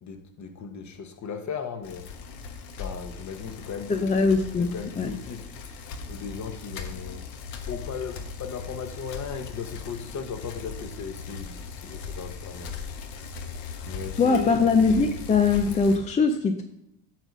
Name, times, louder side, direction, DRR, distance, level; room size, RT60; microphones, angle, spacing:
voice 1, 0.0-2.1 2.8-4.3 4.6-5.5 6.1-7.3 7.7-12.7 13.8-14.6, left 6 dB, 35° left, 1.2 m, -37 dB
Bicycle, 1.8-16.0, left 5 dB, 65° left, 1.3 m, -39 dB
voice 2, 3.9-5.1 14.2-16.6, left 4 dB, 15° left, 0.4 m, -22 dB
9.0 x 3.9 x 6.2 m
supercardioid pair, 110°, 48 cm